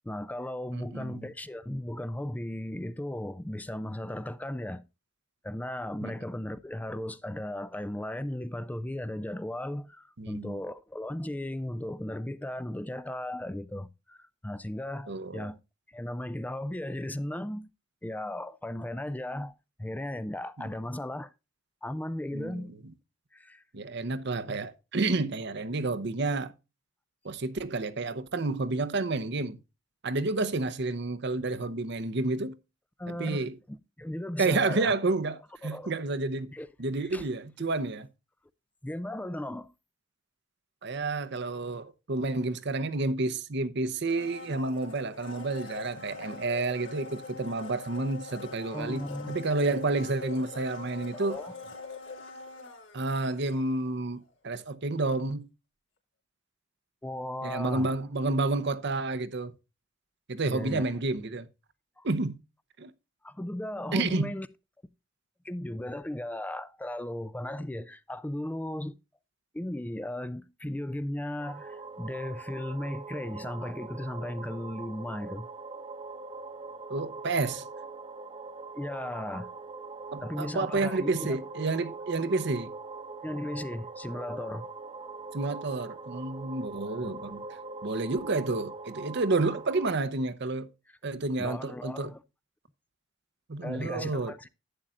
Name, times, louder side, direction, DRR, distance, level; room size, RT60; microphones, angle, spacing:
voice 1, 0.0-4.8 5.4-15.6 15.9-17.7 18.0-21.3 21.8-22.7 23.3-23.6 33.0-34.9 35.6-35.9 36.5-36.7 37.0-37.3 38.8-39.7 48.6-49.4 51.1-51.5 57.0-57.9 60.5-60.9 62.0-62.1 63.2-64.5 65.4-68.9 69.5-75.5 78.7-79.5 80.2-81.4 83.2-84.7 86.9-87.2 91.4-92.2 93.6-94.5, left 1 dB, 10° left, 0.4 m, -36 dB
voice 2, 0.7-1.3 6.0-6.1 10.2-10.6 15.1-15.5 22.3-22.7 23.7-26.5 27.2-29.6 30.0-32.6 33.1-33.6 34.4-36.5 36.8-38.1 40.8-51.4 52.9-55.5 57.4-59.5 60.3-61.5 62.0-62.4 62.8-62.9 63.9-64.3 76.9-77.7 80.1-82.7 85.3-87.4 87.8-90.7 91.0-92.1 93.5-94.3, right 3 dB, 60° right, 0.8 m, -30 dB
Domestic sounds home sounds, 44.0-54.0 54.3-54.4, left 4 dB, 70° left, 3.1 m, -43 dB
sound 1, 71.4-89.9, right 3 dB, 25° right, 0.8 m, -42 dB
11.5 x 8.8 x 2.5 m
head